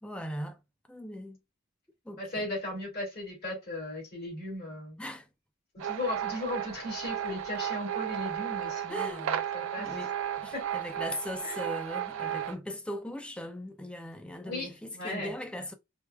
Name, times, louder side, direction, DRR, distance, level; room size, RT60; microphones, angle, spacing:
voice 1, 0.0-0.6 0.9-1.4 2.1-2.4 5.0-5.3 8.9-9.3 9.8-10.1 10.4-15.7, left 1 dB, 5° left, 0.3 m, -39 dB
voice 2, 2.2-5.0 5.8-10.0 10.5-10.6 11.4-11.6 14.4-15.3, left 1 dB, 50° left, 2.2 m, -37 dB
sound 1, 5.8-12.5, right 10 dB, 85° right, 0.5 m, -34 dB
4.4 x 2.2 x 2.3 m
head